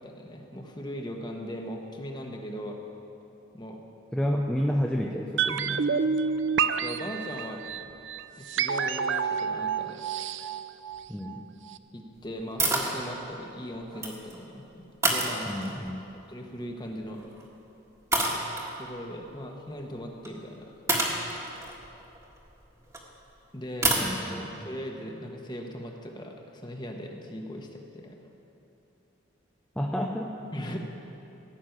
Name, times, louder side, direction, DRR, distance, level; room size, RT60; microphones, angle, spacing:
voice 1, 0.0-2.8 3.5-3.8 6.8-7.6 8.4-10.0 11.9-15.5 16.3-17.2 18.8-20.7 23.5-28.2 30.5-30.8, equal, 20° left, 2 dB, 1.2 m, -39 dB
voice 2, 4.1-5.9 11.1-11.5 15.5-16.1 24.0-24.7 29.8-30.4, equal, 5° left, -1 dB, 0.6 m, -30 dB
sound 1, 5.4-11.4 11.7-11.8, right 6 dB, 70° right, 0.5 m, -29 dB
sound 2, 12.6-13.0 13.8-14.4 15.0-15.9 17.2-17.4 18.1-18.7 20.2-20.3 20.9-23.0 23.8-24.1, right 2 dB, 15° right, 1.6 m, -27 dB
16.0 x 6.5 x 9.3 m, 2.9 s
head